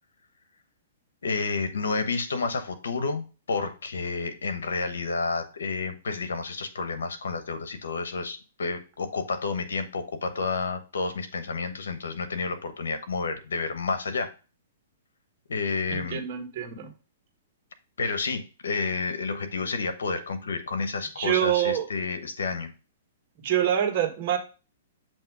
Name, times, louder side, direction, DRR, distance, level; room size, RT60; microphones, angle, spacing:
voice 1, 1.2-14.3 15.5-16.2 18.0-22.7, left 4 dB, 90° left, 9 dB, 1.1 m, -30 dB
voice 2, 15.9-16.9 21.2-21.9 23.4-24.4, right 10 dB, 45° right, 3 dB, 1.5 m, -25 dB
7.3 x 3.0 x 4.7 m, 0.32 s
hypercardioid pair, 140°, 0 cm